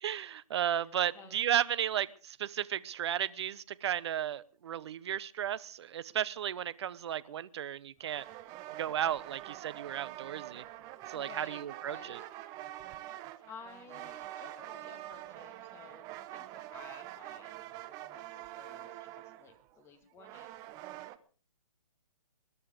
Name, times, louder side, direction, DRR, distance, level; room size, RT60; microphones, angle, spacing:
voice 1, 0.0-8.2 8.8-10.6 11.1-12.2, right 10 dB, 45° right, 18 dB, 0.9 m, -34 dB
voice 2, 0.8-1.4 11.1-12.3 13.5-20.5, left 5 dB, 15° left, 6 dB, 2.1 m, -54 dB
sound 1, 8.0-21.2, right 15 dB, 15° right, 0.8 m, -46 dB
21.5 x 11.5 x 5.1 m, 0.40 s
hypercardioid pair, 145°, 20 cm